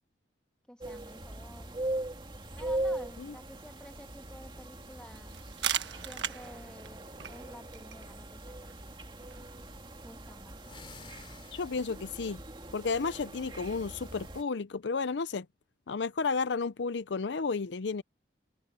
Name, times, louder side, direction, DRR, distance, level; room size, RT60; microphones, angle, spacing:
voice 1, 0.7-1.8 2.6-5.4 6.0-9.7 10.0-10.6, equal, 5° left, 1.7 m, -52 dB
sound 1, 0.8-14.4, right 1 dB, 25° right, 2.4 m, -40 dB
sound 2, 5.3-10.8, right 10 dB, 80° right, 1.5 m, -40 dB
sound 3, 10.6-12.2, left 4 dB, 30° left, 3.3 m, -51 dB
voice 2, 11.5-12.4 12.7-15.5 15.9-18.0, left 4 dB, 80° left, 0.6 m, -32 dB
open air
head